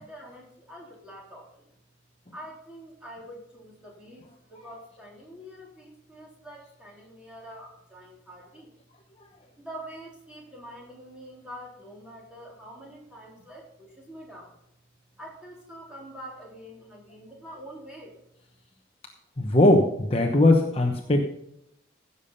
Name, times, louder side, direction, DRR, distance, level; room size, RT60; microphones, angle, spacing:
voice 1, 0.0-1.7 2.3-4.2 4.5-8.7 9.6-14.5 15.2-18.2, equal, 5° right, -3 dB, 3.7 m, -45 dB
voice 2, 19.4-21.3, left 1 dB, 30° left, 2 dB, 1.0 m, -20 dB
15.5 x 7.0 x 5.5 m, 0.80 s
head